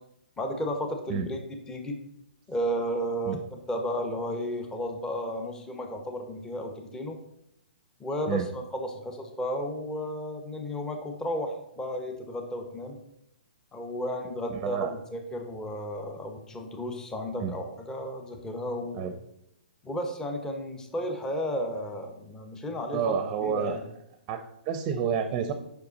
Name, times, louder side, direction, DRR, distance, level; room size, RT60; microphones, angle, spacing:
voice 1, 0.4-2.0 2.5-7.2 8.0-13.0 13.7-19.1 19.8-23.1 23.4-23.8, equal, 10° left, 4 dB, 0.9 m, -33 dB
voice 2, 14.5-14.9 17.4-17.5 18.9-19.1 22.9-23.8 24.3-25.5, right 7 dB, 30° right, 8 dB, 0.6 m, -29 dB
7.0 x 5.7 x 4.0 m, 0.79 s
hypercardioid pair, 135°, 6 cm